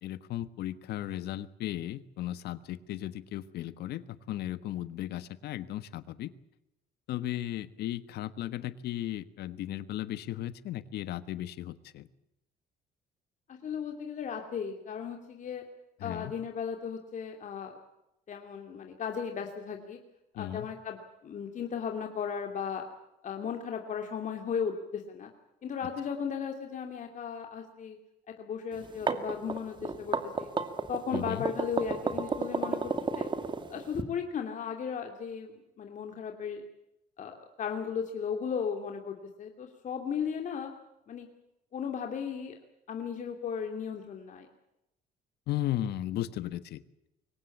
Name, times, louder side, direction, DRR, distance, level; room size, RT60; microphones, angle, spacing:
voice 1, 0.0-6.3 7.1-12.1 16.0-16.3 20.3-20.7 31.1-31.4 45.5-46.8, left 13 dB, 75° left, 14 dB, 1.4 m, -36 dB
voice 2, 13.6-15.6 16.0-17.8 18.3-20.0 20.4-21.0 21.2-22.8 23.2-25.3 25.6-28.0 28.4-30.5 30.9-33.3 33.7-36.6 37.2-40.7 41.1-41.3 41.7-42.6 42.9-44.5, left 7 dB, 50° left, 3 dB, 2.8 m, -36 dB
sound 1, 28.8-34.0, right 4 dB, 30° right, 2.2 m, -32 dB
23.5 x 18.5 x 8.5 m, 0.86 s
cardioid pair, 110°, 17 cm